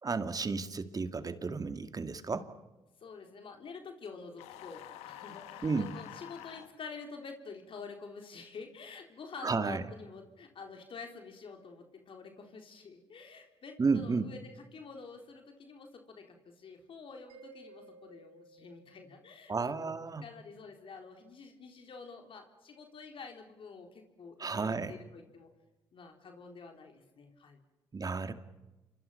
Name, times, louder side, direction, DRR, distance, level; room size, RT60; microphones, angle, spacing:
voice 1, 0.0-2.5 5.6-5.9 9.4-9.8 13.8-14.3 19.5-20.2 24.4-24.9 27.9-28.3, right 4 dB, 35° right, 9 dB, 2.3 m, -32 dB
voice 2, 3.0-19.9 20.2-25.5 25.9-27.6, left 4 dB, 55° left, 3 dB, 3.8 m, -48 dB
sound 1, 4.4-6.7, left 13 dB, 80° left, 1.5 m, -48 dB
Mallet percussion, 17.3-19.8, right 4 dB, 70° right, 1.9 m, -57 dB
28.0 x 25.0 x 5.8 m, 1.1 s
hypercardioid pair, 55°, 11 cm